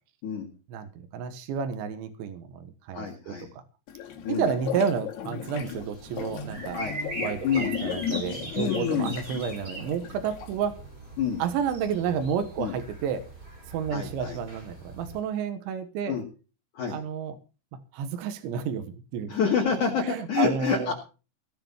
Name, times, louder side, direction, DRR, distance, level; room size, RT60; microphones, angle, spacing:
voice 1, 0.7-3.6 4.3-6.8 7.2-10.8 11.4-13.3 13.7-16.2 16.9-17.4 17.9-19.4 20.0-20.9, right 7 dB, 80° right, 8 dB, 3.6 m, -31 dB
voice 2, 2.9-3.5 4.2-4.5 6.7-7.0 7.4-7.7 8.5-9.2 11.2-11.4 12.6-12.7 13.9-14.4 16.1-16.2 16.7-17.0 19.3-20.9, left 6 dB, 50° left, -1 dB, 3.1 m, -27 dB
sound 1, 3.9-10.6, left 8 dB, 65° left, 3.9 m, -35 dB
sound 2, 5.6-15.2, right 1 dB, 25° right, 3.5 m, -41 dB
17.5 x 6.0 x 7.2 m, 0.35 s
omnidirectional pair, 5.3 m